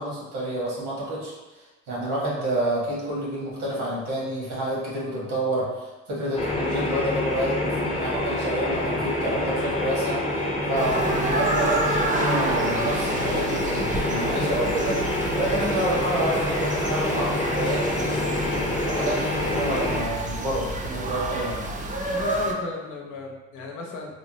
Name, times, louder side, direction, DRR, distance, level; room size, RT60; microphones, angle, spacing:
voice 1, 0.0-1.3 1.9-21.7, right 1 dB, 90° right, -5 dB, 1.2 m, -29 dB
sound 1, 6.4-20.0, left 1 dB, 20° left, 0.6 m, -27 dB
sound 2, 10.8-22.5, right 2 dB, 25° right, 0.4 m, -30 dB
voice 2, 22.1-24.2, left 4 dB, 85° left, -1 dB, 0.7 m, -35 dB
3.6 x 2.0 x 2.7 m, 1.1 s
cardioid pair, 90°, 30 cm